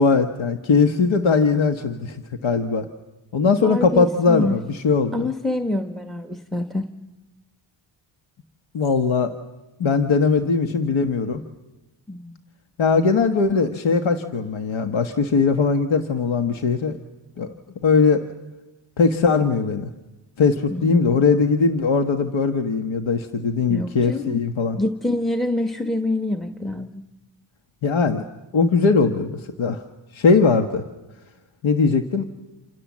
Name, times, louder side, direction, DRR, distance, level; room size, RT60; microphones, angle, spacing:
voice 1, 0.0-2.9 3.3-5.3 8.7-9.3 9.8-11.4 12.8-17.0 17.4-17.5 17.8-18.2 19.0-19.9 20.4-24.8 27.8-28.2 28.5-29.8 30.1-30.8 31.6-32.3, left 4 dB, 70° left, 7 dB, 1.5 m, -20 dB
voice 2, 3.5-4.5 5.1-6.9 12.1-12.4 20.7-21.0 23.7-24.4 24.8-27.0, left 1 dB, ahead, 7 dB, 1.2 m, -26 dB
28.0 x 27.5 x 7.4 m, 1.1 s
wide cardioid pair, 100°, 48 cm